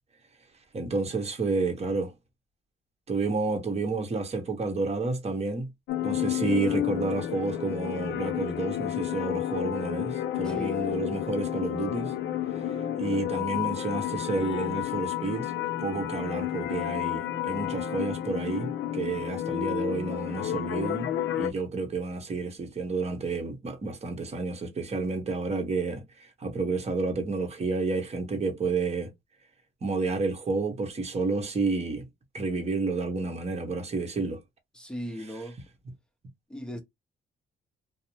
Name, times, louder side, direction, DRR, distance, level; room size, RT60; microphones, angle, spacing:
voice 1, 0.7-2.1 3.1-5.7 6.0-12.1 13.0-15.5 15.8-21.1 21.4-29.1 29.8-32.1 32.3-34.4, right 3 dB, 30° right, 0.9 m, -30 dB
sound 1, 5.9-21.5, left 11 dB, 70° left, 0.4 m, -31 dB
voice 2, 10.4-11.0 34.7-35.6 36.5-36.8, left 1 dB, 5° left, 0.7 m, -37 dB
2.5 x 2.0 x 2.9 m
cardioid pair, 90°, 20 cm